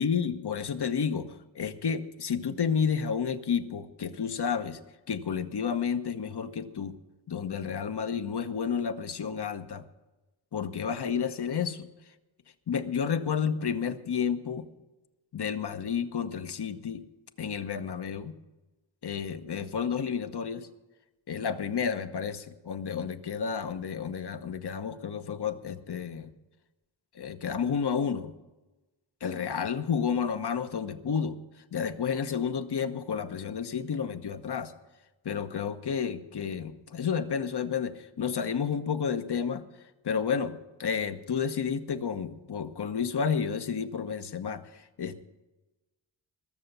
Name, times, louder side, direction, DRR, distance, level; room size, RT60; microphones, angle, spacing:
voice 1, 0.0-4.8 5.1-6.9 7.3-9.8 10.5-11.9 12.7-14.7 15.3-17.0 17.4-18.4 19.0-20.7 21.3-26.3 27.1-28.3 29.2-31.3 31.7-34.7 35.2-39.6 40.0-45.2, left 6 dB, 60° left, 9 dB, 1.1 m, -31 dB
21.0 x 7.0 x 6.8 m, 1.1 s
wide cardioid pair, 80°, 46 cm